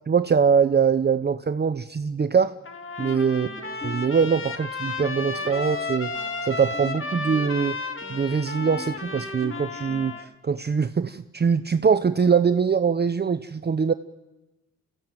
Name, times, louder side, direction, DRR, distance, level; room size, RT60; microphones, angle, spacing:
voice 1, 0.1-2.6 3.0-3.5 3.8-6.1 6.4-7.8 8.1-13.9, right 6 dB, 30° right, 11 dB, 0.8 m, -23 dB
Trumpet, 2.6-10.3, left 3 dB, 40° left, 2.1 m, -33 dB
sound 1, 2.9-10.3, left 1 dB, 15° left, 6.2 m, -42 dB
26.5 x 14.5 x 9.0 m, 1.1 s
supercardioid pair, 55°, 32 cm